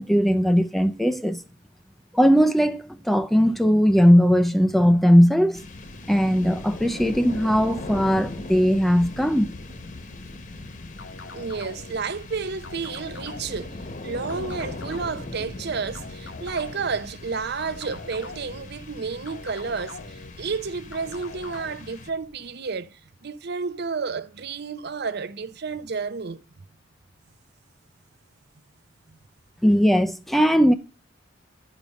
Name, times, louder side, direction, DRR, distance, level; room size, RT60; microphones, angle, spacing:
voice 1, 0.0-1.4 2.1-5.6 6.1-9.5 29.6-30.7, equal, ahead, 0.5 m, -19 dB
sound 1, 5.5-22.5, left 2 dB, 45° left, 1.2 m, -39 dB
sound 2, 11.0-12.0 12.6-13.7 14.3-15.3 15.9-17.0 17.6-18.7 19.3-20.3 20.9-21.8, left 4 dB, 70° left, 1.4 m, -42 dB
voice 2, 11.3-26.7 29.1-29.2, right 5 dB, 60° right, 0.7 m, -31 dB
11.0 x 5.1 x 5.1 m
head